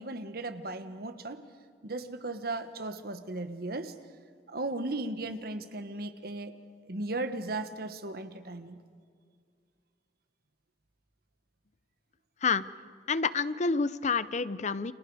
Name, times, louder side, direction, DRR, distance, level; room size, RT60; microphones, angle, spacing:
voice 1, 0.0-1.4 1.8-3.9 4.5-6.5 6.8-8.8, right 2 dB, 60° right, 9 dB, 1.4 m, -36 dB
voice 2, 13.1-14.9, left 4 dB, 40° left, 16 dB, 0.6 m, -28 dB
29.5 x 27.0 x 4.9 m, 2.1 s
head